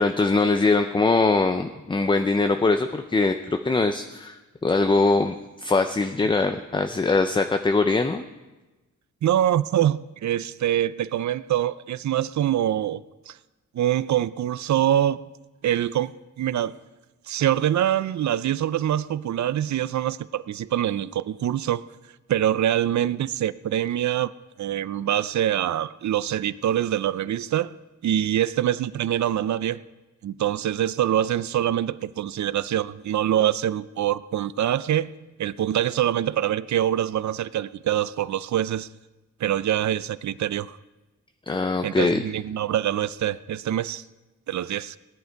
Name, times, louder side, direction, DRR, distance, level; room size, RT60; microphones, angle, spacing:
voice 1, 0.0-4.4 4.6-8.2 41.5-42.2, left 3 dB, 15° left, 7 dB, 0.4 m, -22 dB
voice 2, 9.2-13.0 13.3-13.4 13.7-15.2 15.6-16.7 17.3-21.9 22.3-24.3 24.6-27.7 28.0-29.8 30.2-35.1 35.4-38.9 39.4-40.8 41.8-44.0 44.5-45.0, right 11 dB, 65° right, 17 dB, 0.5 m, -24 dB
18.5 x 10.5 x 4.5 m, 1.1 s
wide cardioid pair, 165°, 30 cm